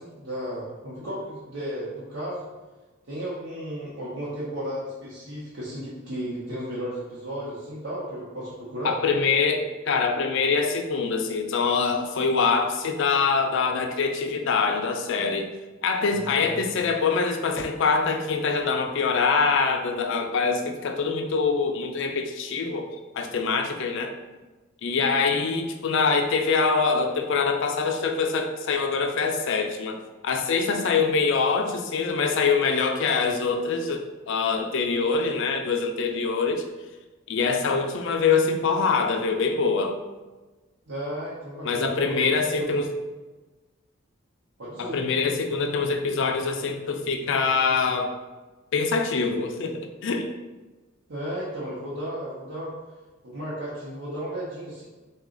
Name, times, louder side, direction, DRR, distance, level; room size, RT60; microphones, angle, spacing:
voice 1, 0.0-2.4 3.0-9.0 16.1-16.6 40.9-42.3 44.6-45.0 51.1-52.7 53.2-54.9, equal, 60° right, -8 dB, 0.8 m, -34 dB
voice 2, 8.8-15.5 15.8-22.9 23.1-24.1 24.8-30.0 30.2-36.7 37.3-40.0 41.6-42.9 44.8-48.1 48.7-50.3, left 4 dB, 60° left, 5 dB, 0.4 m, -24 dB
3.9 x 2.3 x 3.7 m, 1.2 s
head